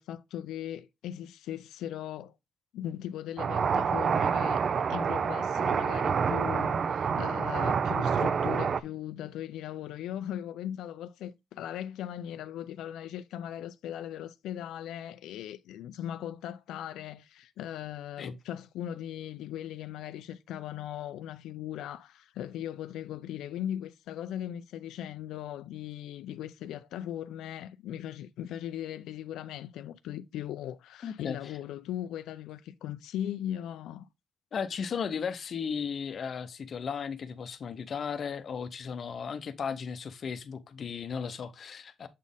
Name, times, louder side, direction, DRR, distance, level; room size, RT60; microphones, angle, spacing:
voice 1, 0.0-2.3 2.7-4.6 4.9-34.1, left 11 dB, 90° left, 0.4 m, -38 dB
sound 1, 3.4-8.8, right 6 dB, 40° right, 0.3 m, -27 dB
voice 2, 31.0-31.6 34.5-42.1, left 6 dB, 45° left, 0.6 m, -35 dB
7.3 x 4.2 x 3.5 m
cardioid pair, 135°, 0 cm